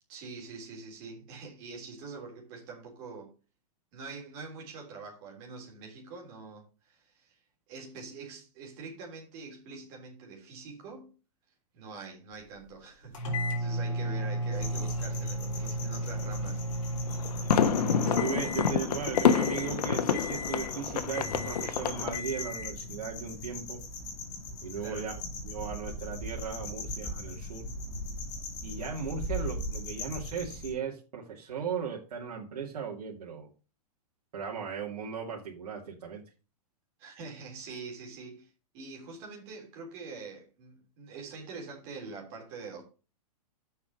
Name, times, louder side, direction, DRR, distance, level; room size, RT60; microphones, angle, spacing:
voice 1, 0.1-3.3 3.9-7.4 7.7-11.2 11.7-13.2 13.6-16.6 24.8-25.0 37.0-42.8, right 4 dB, 30° right, 3.5 m, -44 dB
sound 1, 13.1-18.8 19.1-19.7 20.1-20.8 21.1-21.7 22.1-22.8, equal, 55° left, 3.4 m, -34 dB
sound 2, 14.5-30.7, left 1 dB, 20° left, 1.8 m, -39 dB
sound 3, 17.1-22.2, left 7 dB, 90° left, 1.1 m, -28 dB
voice 2, 18.0-23.8 24.6-25.1 25.4-27.7 28.6-33.5 34.3-36.2, right 6 dB, 85° right, 2.5 m, -37 dB
7.3 x 5.8 x 6.2 m
supercardioid pair, 175°, 20 cm